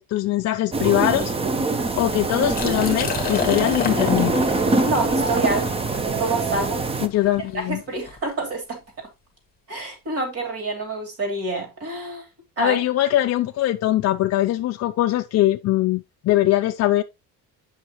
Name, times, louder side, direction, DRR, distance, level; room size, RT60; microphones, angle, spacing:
voice 1, 0.0-1.3 2.0-4.4 7.0-7.8 12.6-17.0, left 14 dB, 45° left, 0.4 m, -21 dB
sound 1, 0.7-7.1, right 3 dB, 15° right, 0.5 m, -24 dB
Liquid, 2.4-8.2, left 7 dB, 25° left, 1.2 m, -31 dB
voice 2, 4.8-5.7 6.2-6.8 7.5-8.8 9.7-12.3 12.6-12.8, right 2 dB, 40° right, 2.8 m, -27 dB
8.0 x 5.7 x 2.9 m
cardioid pair, 160°, 36 cm